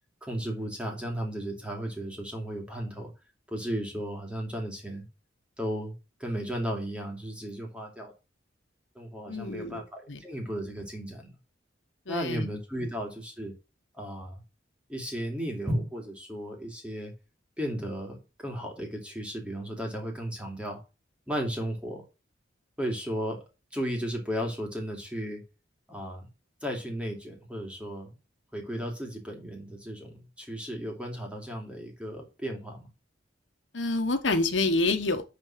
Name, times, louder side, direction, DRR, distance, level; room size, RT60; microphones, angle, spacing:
voice 1, 0.2-3.1 3.5-5.0 5.6-5.9 6.2-8.1 8.9-11.3 12.1-13.5 14.0-14.4 14.9-17.1 17.6-20.8 21.3-22.0 22.8-23.4 23.7-25.4 25.9-26.3 26.6-28.1 28.5-32.9, equal, 5° right, 2.5 m, -34 dB
voice 2, 9.3-9.8 10.1-10.2 12.1-12.5 12.8-12.9 33.7-35.2, left 2 dB, 80° left, 1.2 m, -27 dB
9.8 x 3.9 x 5.8 m
head